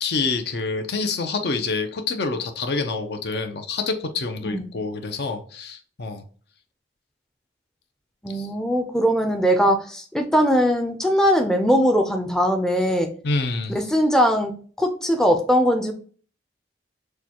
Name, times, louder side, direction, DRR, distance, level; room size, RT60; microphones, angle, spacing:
voice 1, 0.0-6.2 8.3-8.5 13.2-13.8, left 3 dB, 65° left, 0.6 m, -27 dB
voice 2, 8.2-13.1 13.7-15.9, equal, 5° left, 0.4 m, -20 dB
6.4 x 2.3 x 2.9 m
head